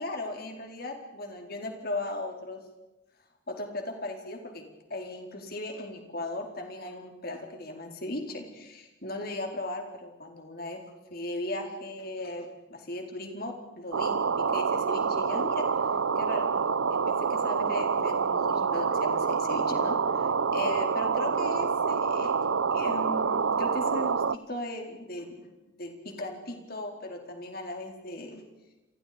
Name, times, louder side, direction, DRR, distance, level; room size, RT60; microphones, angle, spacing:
voice 1, 0.0-2.6 3.5-4.6 4.9-10.8 11.1-15.7 16.2-16.5 16.9-22.4 22.7-25.5 25.8-28.4, left 1 dB, 50° left, 3 dB, 4.3 m, -37 dB
sound 1, 13.9-24.4, right 5 dB, 85° right, 0.7 m, -27 dB
30.0 x 23.5 x 5.2 m, 1.0 s
head